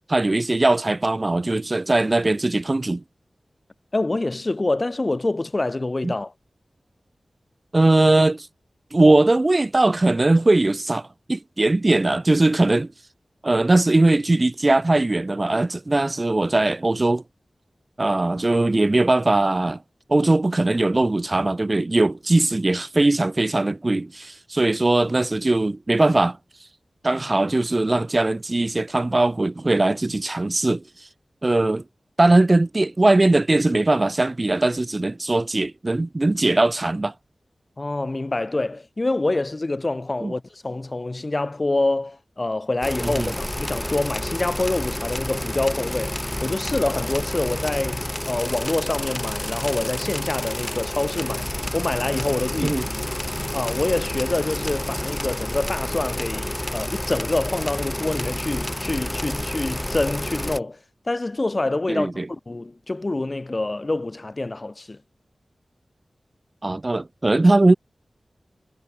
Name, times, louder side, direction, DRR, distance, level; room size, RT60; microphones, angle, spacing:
voice 1, 0.1-3.0 6.0-6.1 7.7-8.5 8.9-12.9 13.4-17.2 18.0-19.8 20.1-26.4 27.0-31.1 31.4-31.8 32.2-37.1 40.2-40.3 43.2-43.3 52.6-52.8 61.9-62.3 66.6-67.7, right 2 dB, 35° right, 0.4 m, -20 dB
voice 2, 3.9-6.3 37.8-52.8 53.5-65.0, left 2 dB, 35° left, 0.7 m, -26 dB
sound 1, 42.8-60.6, left 1 dB, 10° left, 1.0 m, -29 dB
wide cardioid pair, 85°, 0 cm